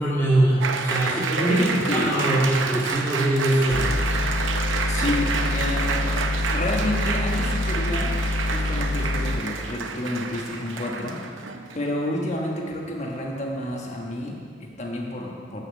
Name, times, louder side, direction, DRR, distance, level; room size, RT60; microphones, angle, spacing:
voice 1, 0.0-3.9, right 1 dB, 10° left, -12 dB, 2.3 m, -22 dB
Applause, 0.6-11.9, right 5 dB, 85° right, 0.7 m, -29 dB
voice 2, 1.5-2.1 4.9-6.1 6.5-8.2 8.5-11.2 11.7-15.6, left 1 dB, 35° left, 0 dB, 1.3 m, -29 dB
sound 1, 3.7-9.4, left 2 dB, 60° left, 0.6 m, -26 dB
8.4 x 6.8 x 7.2 m, 2.1 s
head